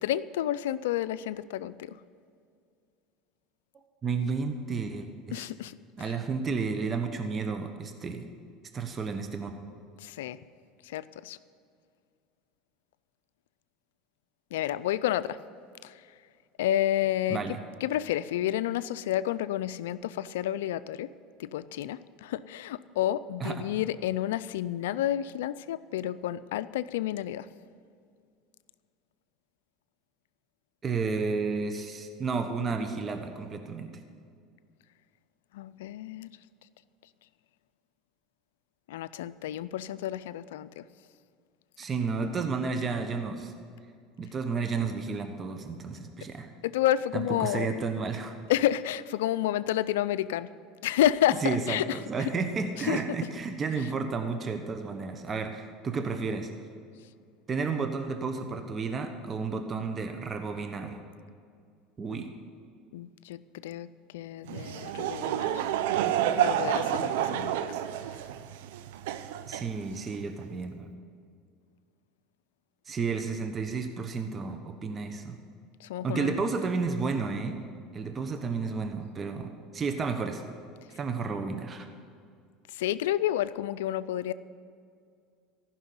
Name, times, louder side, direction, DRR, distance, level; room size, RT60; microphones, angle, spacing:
voice 1, 0.0-1.9 5.3-6.2 10.0-10.4 10.9-11.4 14.5-15.4 15.8-15.9 16.6-17.4 17.8-21.1 21.4-27.5 35.5-36.3 38.9-40.8 46.6-47.7 48.5-50.5 50.8-52.0 52.9-53.0 62.1-62.3 62.9-63.9 64.1-65.6 66.4-67.5 75.8-76.4 82.7-84.3, left 12 dB, 85° left, 16 dB, 0.4 m, -30 dB
voice 2, 4.0-5.5 6.0-8.3 8.7-9.5 17.3-17.6 23.4-23.6 30.8-33.9 41.8-43.5 44.2-46.5 47.1-48.4 51.4-56.5 57.5-61.0 62.0-62.3 69.5-70.9 72.9-75.4 76.0-77.7 77.9-80.4 81.0-81.9, right 4 dB, 30° right, 6 dB, 1.1 m, -32 dB
Laughter / Crowd, 64.5-70.2, right 11 dB, 80° right, 0.6 m, -29 dB
15.0 x 6.1 x 9.6 m, 2.2 s
supercardioid pair, 100°, 0 cm